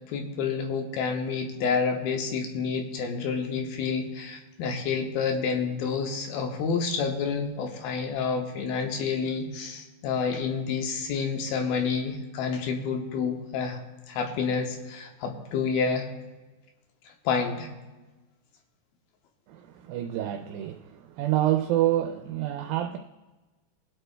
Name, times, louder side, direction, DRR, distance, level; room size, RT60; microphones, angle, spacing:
voice 1, 0.1-13.8 14.1-16.1 17.3-17.7, left 5 dB, 80° left, 4 dB, 2.8 m, -29 dB
voice 2, 19.5-23.0, right 13 dB, 80° right, 4 dB, 2.3 m, -27 dB
23.0 x 8.1 x 2.2 m, 1.2 s
omnidirectional pair, 4.3 m